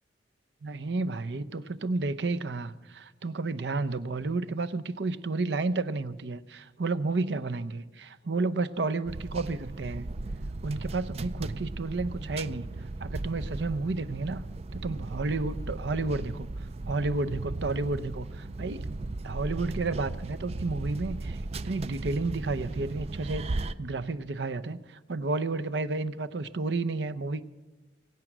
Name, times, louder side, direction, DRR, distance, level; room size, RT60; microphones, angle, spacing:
voice 1, 0.6-10.1 10.6-12.7 13.0-14.4 14.7-16.5 16.9-18.8 19.2-27.4, right 3 dB, 70° right, 11 dB, 0.7 m, -31 dB
sound 1, 9.0-23.7, right 2 dB, 35° right, 0.4 m, -36 dB
22.5 x 9.0 x 6.1 m, 1.1 s
head